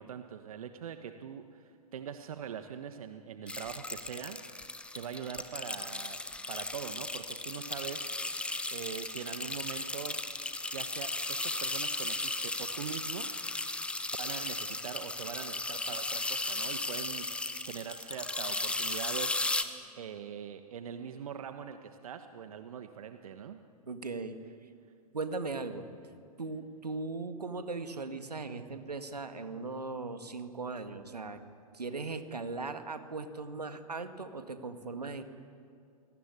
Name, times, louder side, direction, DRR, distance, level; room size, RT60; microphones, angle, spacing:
voice 1, 0.0-4.4 4.9-6.2 6.5-8.1 8.7-10.2 10.7-13.3 14.2-19.4 20.0-23.6, right 8 dB, 65° right, 8 dB, 1.5 m, -42 dB
sound 1, 3.5-19.6, left 2 dB, 5° left, 1.3 m, -36 dB
voice 2, 23.9-24.4 25.1-25.9 26.4-31.4 31.7-35.2, right 3 dB, 85° right, 8 dB, 2.0 m, -38 dB
28.0 x 19.5 x 9.8 m, 2.4 s
figure-of-eight pair, 110°, 20 cm